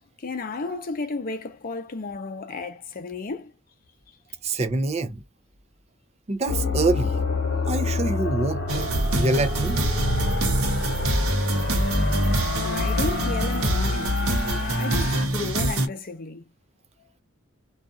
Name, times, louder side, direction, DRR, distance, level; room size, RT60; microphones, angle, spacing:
voice 1, 0.2-3.5 12.6-14.2 14.8-16.4, left 3 dB, 40° left, 0.6 m, -33 dB
voice 2, 4.4-5.2 6.3-7.2 7.6-9.8, right 2 dB, 30° right, 0.5 m, -26 dB
sound 1, 6.5-15.3, left 3 dB, 60° left, 1.0 m, -29 dB
sound 2, 8.7-15.9, right 1 dB, 85° right, 0.8 m, -24 dB
2.6 x 2.4 x 2.3 m
head